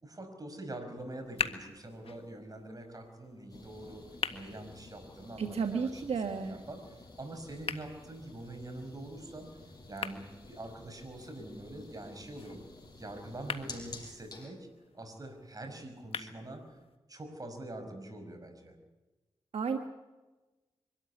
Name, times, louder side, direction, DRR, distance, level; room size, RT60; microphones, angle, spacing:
voice 1, 0.0-4.0 4.3-9.5 9.9-12.6 13.0-14.7 14.9-16.6 17.1-18.8, right 1 dB, 35° right, 6 dB, 5.5 m, -44 dB
sound 1, 1.0-17.0, left 5 dB, 65° left, 1.6 m, -45 dB
sound 2, 3.5-14.5, left 3 dB, 40° left, 5.8 m, -52 dB
voice 2, 5.4-6.6 19.5-19.8, right 5 dB, 75° right, 5 dB, 1.4 m, -32 dB
24.0 x 13.5 x 9.7 m, 1.2 s
cardioid pair, 55°, 10 cm